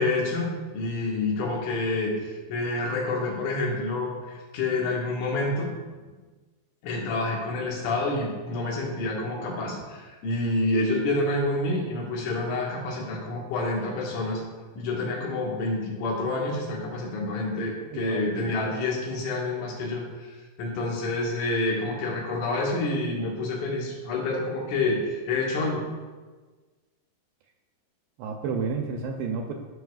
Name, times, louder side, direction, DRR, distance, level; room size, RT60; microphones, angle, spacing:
voice 1, 0.0-5.7 6.8-14.4 14.8-25.8, left 2 dB, 90° left, -3 dB, 4.1 m, -28 dB
voice 2, 17.9-18.3 28.2-29.5, right 5 dB, 80° right, 3 dB, 2.4 m, -30 dB
14.5 x 6.3 x 2.4 m, 1.3 s
omnidirectional pair, 5.3 m